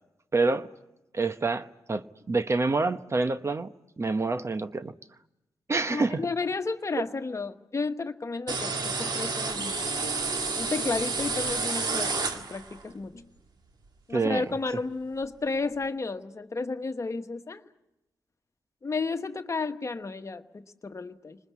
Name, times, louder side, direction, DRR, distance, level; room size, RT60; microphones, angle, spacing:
voice 1, 0.3-0.7 1.1-3.7 4.0-4.9 5.7-6.3 14.1-14.6, right 3 dB, 35° right, 1.0 m, -27 dB
voice 2, 5.9-9.8 10.6-13.3 14.1-17.6 18.8-21.4, left 4 dB, 40° left, 1.4 m, -32 dB
sound 1, 8.5-12.8, right 4 dB, 60° right, 2.2 m, -30 dB
29.5 x 20.5 x 8.5 m
supercardioid pair, 50°, 8 cm